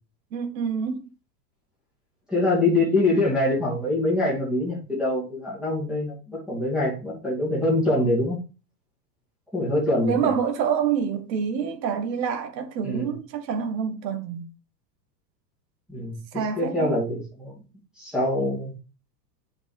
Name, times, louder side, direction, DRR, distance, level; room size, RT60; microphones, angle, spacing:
voice 1, 0.3-1.0 10.0-14.5 16.3-17.0, right 7 dB, 80° right, 1.4 m, -27 dB
voice 2, 2.3-8.4 9.5-10.3 12.8-13.1 15.9-16.2 16.6-17.5 18.0-18.7, left 2 dB, ahead, 2.6 m, -24 dB
9.2 x 5.4 x 3.4 m
supercardioid pair, 180°, 50 cm